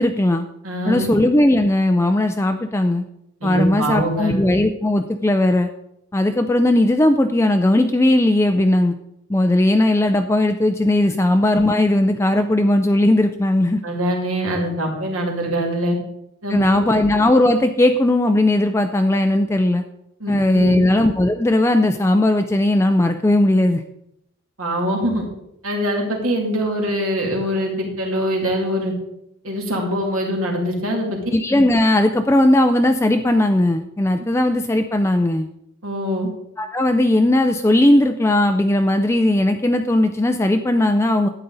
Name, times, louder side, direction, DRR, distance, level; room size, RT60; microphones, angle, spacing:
voice 1, 0.0-0.5 0.9-3.0 3.4-5.7 6.1-8.9 9.3-13.8 16.5-19.8 20.3-23.8 31.3-35.5 36.6-41.3, left 1 dB, 10° left, 6 dB, 0.4 m, -17 dB
voice 2, 0.6-1.1 3.4-4.4 13.8-16.0 16.4-17.0 20.2-20.9 24.6-25.2 25.6-28.9 29.4-31.2 35.8-36.3, equal, 75° right, 0 dB, 2.7 m, -23 dB
11.5 x 9.1 x 4.0 m, 0.80 s
head